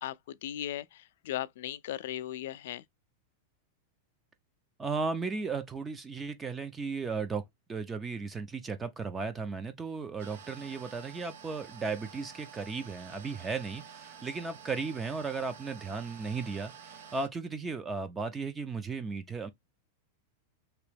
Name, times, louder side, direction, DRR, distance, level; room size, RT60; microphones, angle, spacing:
voice 1, 0.0-2.8, left 12 dB, 70° left, 0.3 m, -37 dB
voice 2, 4.8-7.4 7.7-19.5, right 4 dB, 15° right, 0.5 m, -35 dB
sound 1, 10.2-17.3, right 7 dB, 75° right, 0.6 m, -50 dB
3.0 x 2.9 x 3.3 m
supercardioid pair, 145°, 0 cm